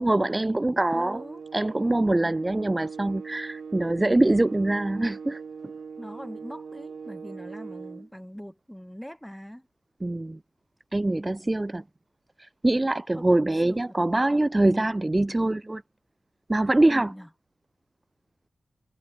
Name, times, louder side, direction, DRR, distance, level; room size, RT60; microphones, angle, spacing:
voice 1, 0.0-1.2 1.5-5.4 10.0-10.4 10.9-11.8 12.6-15.8 16.5-17.1, right 2 dB, 15° right, 0.3 m, -24 dB
voice 2, 0.9-1.4 6.0-9.7 13.1-13.4 13.6-14.0 16.9-17.3, equal, ahead, 4.6 m, -42 dB
sound 1, 1.0-8.1, right 5 dB, 65° right, 1.3 m, -40 dB
wide cardioid pair, 120°, 0 cm